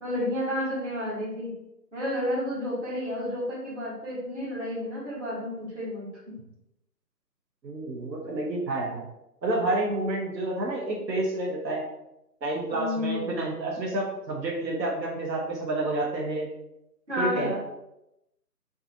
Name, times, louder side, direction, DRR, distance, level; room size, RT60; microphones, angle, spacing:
voice 1, 0.0-1.5 1.9-6.1 12.7-13.3 17.1-17.6, left 1 dB, 45° right, -7 dB, 1.2 m, -31 dB
voice 2, 7.6-9.0 9.4-11.8 12.4-16.5 17.2-17.6, right 2 dB, 90° right, -2 dB, 0.9 m, -29 dB
2.6 x 2.4 x 2.5 m, 0.87 s
figure-of-eight pair, 175°, 50 cm